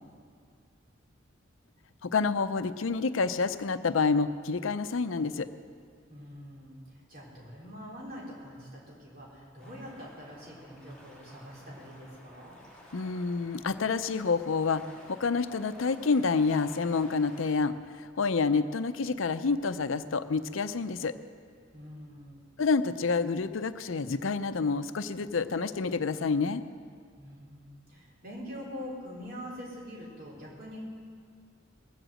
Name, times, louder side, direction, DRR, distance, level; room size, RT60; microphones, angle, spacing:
voice 1, 2.0-5.5 12.9-21.2 22.6-26.6, left 4 dB, 90° left, 11 dB, 0.6 m, -28 dB
voice 2, 6.1-12.6 21.7-22.5 27.2-30.8, equal, 50° right, -4 dB, 3.9 m, -44 dB
sound 1, 9.6-17.5, equal, 5° left, 3.4 m, -53 dB
19.5 x 7.9 x 7.8 m, 2.1 s
head